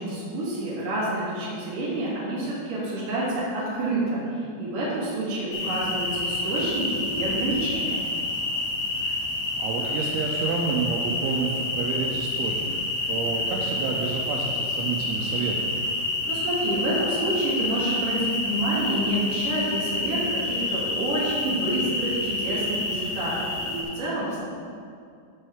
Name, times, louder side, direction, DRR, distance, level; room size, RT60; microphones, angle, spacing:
voice 1, 0.0-8.0 16.2-24.4, right 1 dB, 50° right, -8 dB, 3.7 m, -28 dB
sound 1, 5.5-23.8, left 2 dB, 70° left, 1.7 m, -28 dB
voice 2, 9.6-12.8 13.1-15.7, right 5 dB, 85° right, 0 dB, 3.1 m, -29 dB
14.5 x 5.4 x 3.5 m, 2.4 s
omnidirectional pair, 5.4 m